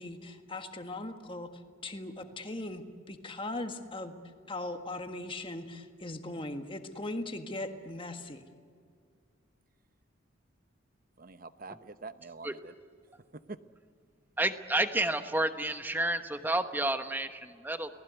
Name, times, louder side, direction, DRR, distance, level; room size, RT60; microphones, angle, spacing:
voice 1, 0.0-1.5 1.8-4.1 4.5-8.5, left 2 dB, 25° left, 6 dB, 1.6 m, -39 dB
voice 2, 11.2-12.7 13.1-13.6, right 3 dB, 45° right, 12 dB, 0.9 m, -46 dB
voice 3, 14.4-17.9, right 1 dB, 10° right, 8 dB, 1.1 m, -30 dB
30.0 x 19.0 x 8.2 m, 2.2 s
head